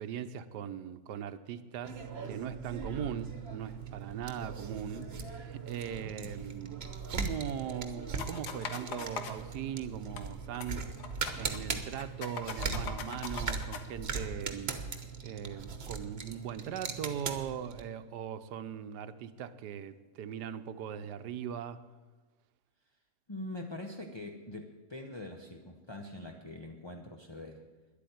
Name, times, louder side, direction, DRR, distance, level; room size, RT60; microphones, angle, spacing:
voice 1, 0.0-2.0 2.2-6.8 7.1-10.8 11.3-14.8 15.2-21.8, right 8 dB, 90° right, 11 dB, 1.3 m, -40 dB
sound 1, 1.8-17.9, right 5 dB, 45° right, 1.2 m, -39 dB
voice 2, 6.0-6.4 23.3-27.6, left 2 dB, 30° left, 2 dB, 0.5 m, -44 dB
sound 2, 8.2-9.4 10.2-10.3 10.5-10.7 11.0-11.6 12.0-13.8, left 6 dB, 80° left, 1.6 m, -40 dB
11.0 x 8.5 x 9.4 m, 1.3 s
omnidirectional pair, 1.7 m